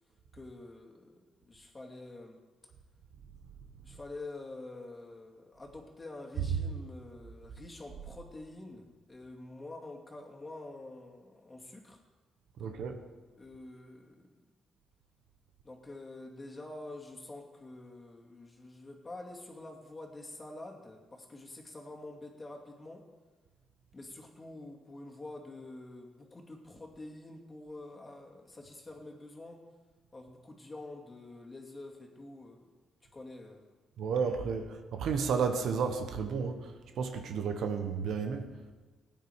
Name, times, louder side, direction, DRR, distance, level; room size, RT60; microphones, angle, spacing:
voice 1, 0.3-2.4 3.8-12.0 13.4-14.5 15.6-23.1 23.9-29.6 30.1-32.7 33.1-33.7, left 2 dB, 25° left, 0 dB, 2.4 m, -47 dB
voice 2, 6.4-6.7 12.6-13.0 34.0-38.5, right 6 dB, 70° right, 6 dB, 1.3 m, -32 dB
16.5 x 9.1 x 4.8 m, 1.3 s
cardioid pair, 90°, 0 cm